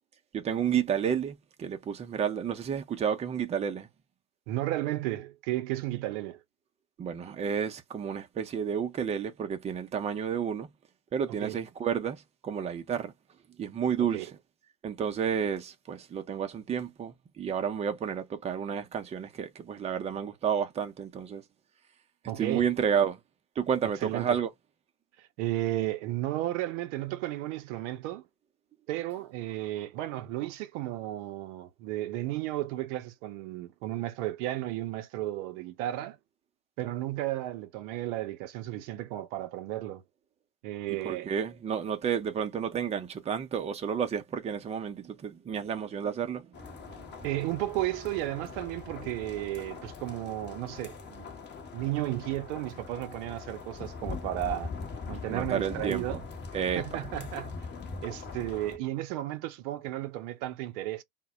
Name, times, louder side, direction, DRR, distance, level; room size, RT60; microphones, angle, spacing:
voice 1, 0.3-3.9 7.0-10.7 11.1-13.1 13.6-14.3 14.8-21.4 22.4-23.2 23.6-24.5 41.0-46.6 47.0-47.1 55.3-56.2 56.5-57.0, right 7 dB, 15° right, 0.4 m, -31 dB
voice 2, 4.5-6.4 11.3-11.6 14.0-14.3 22.3-22.7 24.0-24.4 25.2-28.2 28.9-36.2 36.8-40.0 40.6-41.3 47.2-51.3 51.7-54.7 55.1-56.2 56.8-57.5 58.0-61.0, right 15 dB, 55° right, 0.6 m, -33 dB
sound 1, 46.5-58.8, left 4 dB, 25° left, 0.8 m, -42 dB
2.1 x 2.0 x 3.7 m
hypercardioid pair, 80°, 45 cm